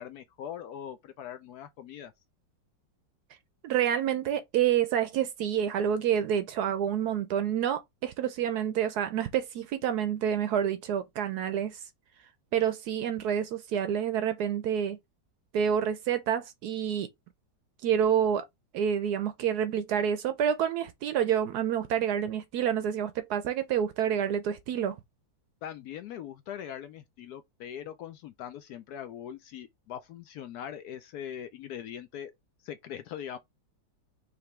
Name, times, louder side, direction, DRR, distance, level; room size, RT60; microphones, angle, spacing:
voice 1, 0.0-2.1 25.6-32.3 32.6-33.4, left 9 dB, 70° left, 0.9 m, -41 dB
voice 2, 3.6-11.8 12.5-15.0 15.5-17.1 17.8-18.5 18.7-25.0, right 9 dB, 70° right, 1.0 m, -28 dB
5.1 x 2.9 x 3.2 m
omnidirectional pair, 2.0 m